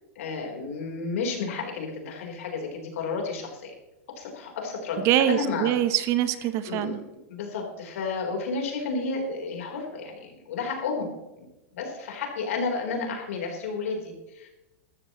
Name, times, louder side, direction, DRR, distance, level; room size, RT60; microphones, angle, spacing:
voice 1, 0.2-3.7 4.1-5.7 6.6-11.1 11.4-11.5 11.7-14.5, left 4 dB, 75° left, 1 dB, 3.9 m, -32 dB
voice 2, 5.0-7.0, right 11 dB, 40° right, 13 dB, 0.9 m, -24 dB
14.5 x 13.0 x 3.1 m, 1.0 s
hypercardioid pair, 135°, 7 cm